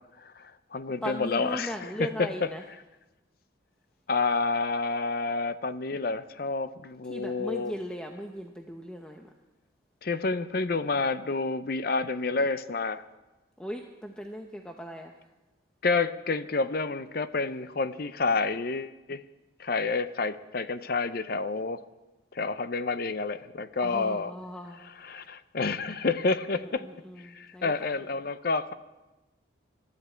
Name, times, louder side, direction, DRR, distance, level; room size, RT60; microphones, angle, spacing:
voice 1, 0.2-1.7 2.0-2.3 4.1-7.7 10.0-13.0 15.8-19.2 19.6-21.8 22.3-24.3 25.0-26.9 27.2-28.7, left 3 dB, 50° left, 13 dB, 0.6 m, -29 dB
voice 2, 1.0-2.6 7.0-9.3 13.6-15.3 23.8-24.8 26.5-27.9, equal, 5° left, 2 dB, 0.7 m, -38 dB
23.0 x 13.0 x 4.5 m, 1.1 s
head